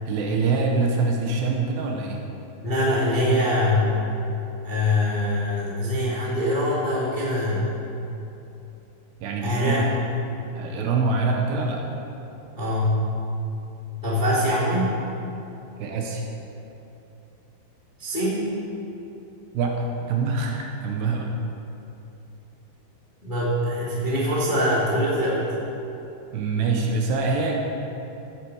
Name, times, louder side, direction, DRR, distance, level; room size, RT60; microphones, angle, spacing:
voice 1, 0.1-2.3 9.2-9.9 10.5-11.8 15.8-16.2 19.5-21.3 26.3-27.6, right 4 dB, 75° right, 1 dB, 2.9 m, -25 dB
voice 2, 2.6-4.0 4.6-7.7 9.4-10.0 12.5-13.0 14.0-14.9 18.0-18.4 23.2-25.4, left 1 dB, 25° left, -8 dB, 1.0 m, -23 dB
16.0 x 8.6 x 4.8 m, 2.9 s
omnidirectional pair, 5.4 m